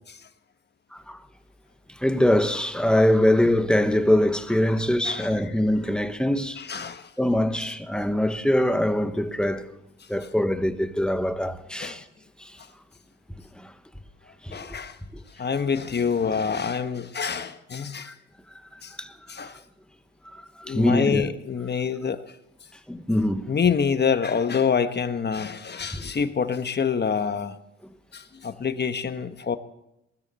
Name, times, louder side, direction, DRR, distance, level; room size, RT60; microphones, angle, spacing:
voice 1, 2.0-6.6 7.2-9.7 10.1-12.0 12.4-12.6 13.5-13.7 14.4-14.6 15.1-15.2 18.1-18.2 18.7-19.1 20.2-21.2 22.9-23.5 25.9-26.0, left 1 dB, 5° left, 1.2 m, -23 dB
voice 2, 6.6-7.1 11.8-12.0 14.5-15.0 15.4-18.1 18.8-18.9 19.3-19.6 20.7-22.2 23.5-27.5 28.1-29.6, left 6 dB, 35° left, 1.2 m, -26 dB
19.5 x 13.0 x 4.2 m
cardioid pair, 90°, 30 cm